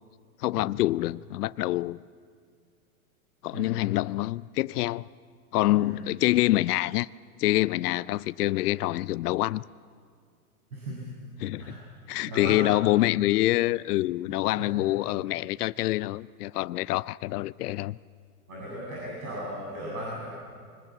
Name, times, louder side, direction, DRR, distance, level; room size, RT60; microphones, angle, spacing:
voice 1, 0.4-2.0 3.4-5.1 5.5-7.1 7.4-9.6 11.4-11.7 12.1-18.0, left 16 dB, 85° left, 0.5 m, -26 dB
voice 2, 3.5-3.9 5.5-6.1 10.7-11.0 11.4-11.8 12.2-12.8 14.4-14.8 18.5-20.3, right 1 dB, 70° right, 7.6 m, -37 dB
24.0 x 20.5 x 7.5 m
hypercardioid pair, 135°, 45 cm